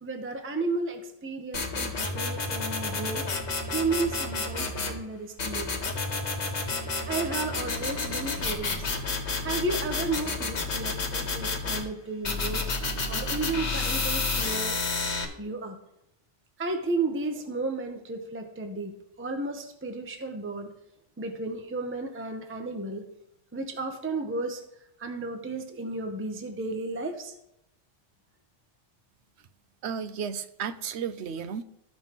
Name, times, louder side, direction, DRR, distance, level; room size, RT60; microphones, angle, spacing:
voice 1, 0.0-3.2 3.7-5.7 7.1-8.9 9.4-12.7 13.1-14.8 15.4-15.8 16.6-20.7 21.2-23.1 23.5-24.6 25.0-27.3, right 3 dB, 15° right, 5 dB, 0.6 m, -33 dB
sound 1, 1.5-5.0 5.4-11.8 12.2-15.2, left 3 dB, 65° left, 1.4 m, -30 dB
voice 2, 29.8-31.6, right 7 dB, 70° right, 11 dB, 0.8 m, -33 dB
14.5 x 5.4 x 3.0 m, 0.82 s
omnidirectional pair, 1.2 m